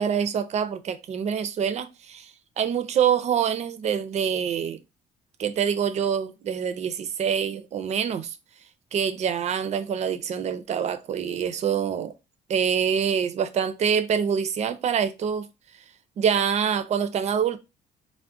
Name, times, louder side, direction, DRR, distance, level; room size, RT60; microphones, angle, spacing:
voice 1, 0.0-2.3 2.6-4.8 5.4-8.4 8.9-12.1 12.5-15.5 16.2-17.6, right 7 dB, 40° right, 0.4 m, -25 dB
2.4 x 2.1 x 3.7 m
cardioid pair, 110°, 17 cm